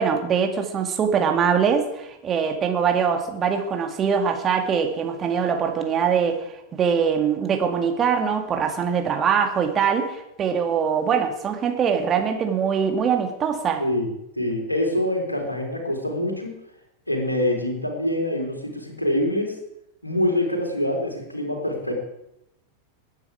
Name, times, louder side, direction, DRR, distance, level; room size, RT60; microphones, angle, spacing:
voice 1, 0.0-13.8, right 7 dB, 25° right, 4 dB, 2.2 m, -23 dB
voice 2, 14.4-16.5 17.1-19.6 20.0-21.9, left 1 dB, 85° left, 2 dB, 3.6 m, -25 dB
20.5 x 9.7 x 4.9 m, 0.84 s
figure-of-eight pair, 90°, 0 cm